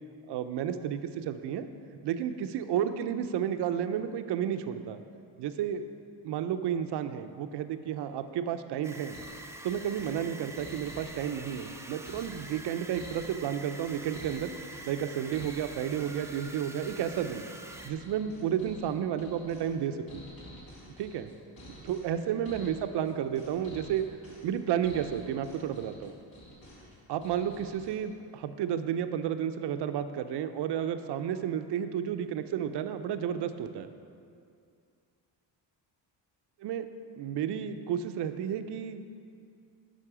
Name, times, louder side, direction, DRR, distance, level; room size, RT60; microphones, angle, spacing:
voice 1, 0.3-1.7 2.0-5.0 5.4-5.8 6.2-9.2 9.6-14.5 14.9-17.4 17.8-20.2 21.0-21.3 21.8-24.1 24.4-26.1 27.1-33.9 36.6-36.9 37.2-39.0, right 9 dB, 70° right, 9 dB, 0.6 m, -32 dB
sound 1, 8.8-17.9, right 2 dB, 5° right, 0.4 m, -46 dB
sound 2, 9.1-28.0, left 1 dB, 50° left, 2.1 m, -50 dB
7.5 x 5.9 x 4.9 m, 2.3 s
cardioid pair, 80°, 43 cm